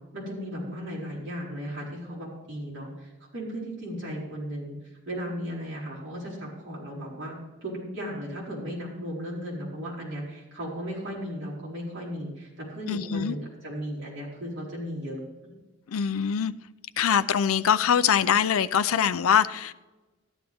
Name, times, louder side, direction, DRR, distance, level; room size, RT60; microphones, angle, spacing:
voice 1, 0.1-7.3 7.6-15.2, equal, 55° right, -6 dB, 4.6 m, -36 dB
voice 2, 12.9-13.4 15.9-16.5 17.0-19.7, left 8 dB, 75° left, 14 dB, 0.4 m, -23 dB
13.5 x 11.0 x 3.5 m, 1.2 s
head